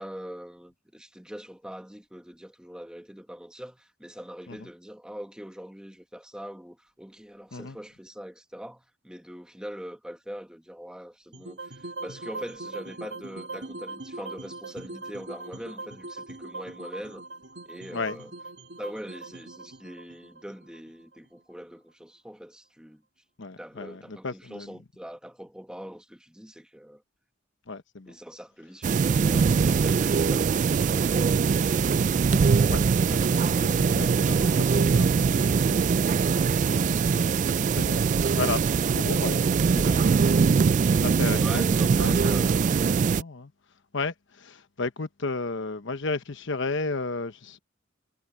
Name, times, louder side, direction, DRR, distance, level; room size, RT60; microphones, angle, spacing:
voice 1, 0.0-17.2 17.6-18.3 18.8-23.0 23.6-27.0 28.1-31.8 41.3-42.5, equal, 5° right, 1.6 m, -42 dB
sound 1, 11.3-21.5, right 2 dB, 60° right, 2.3 m, -41 dB
voice 2, 23.4-24.7 27.7-28.1 32.7-32.8 33.1-35.9 36.7-37.2 37.7-38.0 38.3-38.6 38.9-42.5 43.2-43.5 43.9-47.6, left 3 dB, 65° left, 1.0 m, -34 dB
sound 2, 28.8-43.2, right 5 dB, 40° right, 0.3 m, -22 dB
head